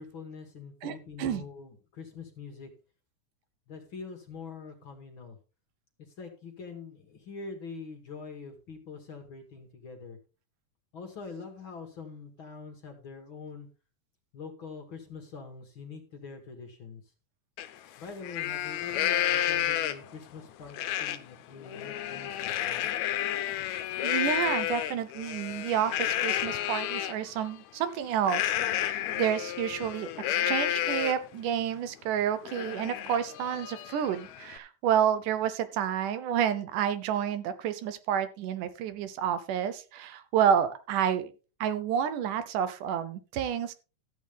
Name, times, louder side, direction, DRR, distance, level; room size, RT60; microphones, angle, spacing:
voice 1, 0.0-2.7 3.7-5.4 6.2-10.2 10.9-13.7 14.3-17.0 18.0-22.9, left 5 dB, 50° left, 5 dB, 1.9 m, -44 dB
voice 2, 0.8-1.4 24.0-41.3 41.6-43.7, right 9 dB, 85° right, 12 dB, 2.4 m, -29 dB
Livestock farm animals working animals, 17.6-17.7 18.1-20.2 20.7-21.2 21.6-27.1 28.2-31.3 31.8-31.9 32.2-34.6, left 12 dB, 75° left, 1.9 m, -31 dB
13.0 x 8.3 x 3.5 m, 0.33 s
omnidirectional pair, 3.6 m